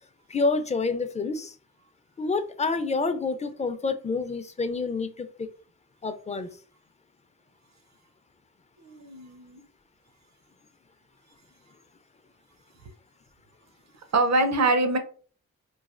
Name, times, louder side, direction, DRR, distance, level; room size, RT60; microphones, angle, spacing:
voice 1, 0.3-1.5 2.2-5.5 6.0-6.5, left 3 dB, 25° left, 10 dB, 0.4 m, -28 dB
voice 2, 8.8-9.6 14.1-15.0, right 2 dB, 65° right, 8 dB, 0.6 m, -24 dB
3.1 x 2.2 x 2.4 m, 0.41 s
cardioid pair, 60°, 30 cm